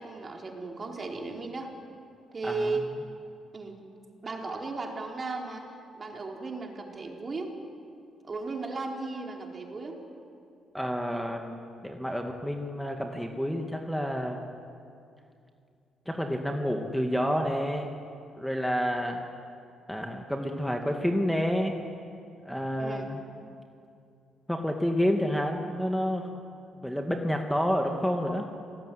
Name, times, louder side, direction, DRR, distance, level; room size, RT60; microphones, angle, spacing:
voice 1, 0.0-1.7 2.3-2.9 3.5-3.8 4.2-5.7 5.9-7.5 8.3-10.0 22.8-23.1, right 3 dB, 35° right, 1 dB, 4.3 m, -35 dB
voice 2, 2.4-2.8 10.7-14.5 16.1-17.9 18.4-19.2 19.9-21.8 22.4-23.2 24.5-26.3 26.8-28.5, equal, ahead, 3 dB, 2.2 m, -29 dB
28.0 x 19.0 x 9.5 m, 2.5 s
cardioid pair, 90°, 0 cm